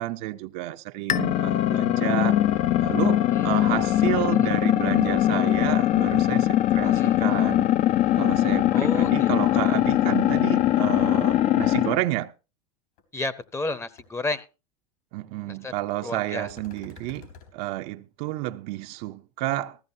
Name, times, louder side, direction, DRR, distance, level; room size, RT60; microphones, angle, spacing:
voice 1, 0.0-2.4 2.8-7.7 8.1-12.3 15.1-19.8, right 16 dB, 55° right, 0.7 m, -30 dB
sound 1, 1.1-12.0, left 13 dB, 40° left, 0.6 m, -21 dB
voice 2, 6.8-7.2 8.7-9.8 13.1-14.5 15.5-15.7 16.0-16.5, left 2 dB, 15° left, 0.8 m, -32 dB
sound 2, 13.0-13.1 13.4-13.7 14.0-14.1 16.4-17.5, left 6 dB, 70° left, 3.8 m, -47 dB
15.0 x 14.5 x 2.7 m
supercardioid pair, 120°, 19 cm